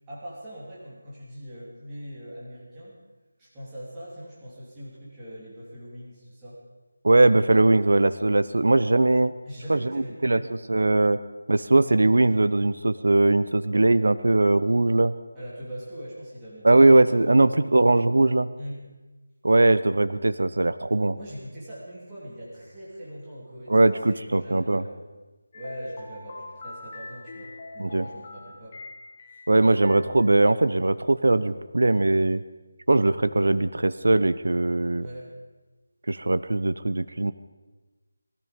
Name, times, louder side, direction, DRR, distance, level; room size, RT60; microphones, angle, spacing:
voice 1, 0.1-3.0 3.4-6.6 9.4-10.4 15.3-17.4 18.6-18.8 21.2-23.8 24.0-25.0 25.5-28.8 29.3-29.4 35.0-35.3, equal, 10° right, -8 dB, 3.0 m, -41 dB
voice 2, 7.0-9.3 9.7-11.2 11.5-15.1 16.6-18.5 19.4-21.2 23.7-24.8 27.8-28.0 29.5-32.4 32.9-35.1 36.1-37.3, right 2 dB, 70° right, 13 dB, 0.8 m, -20 dB
sound 1, 25.5-30.8, left 2 dB, 25° left, 1.5 m, -43 dB
19.5 x 14.0 x 5.2 m, 1.2 s
figure-of-eight pair, 175°, 0 cm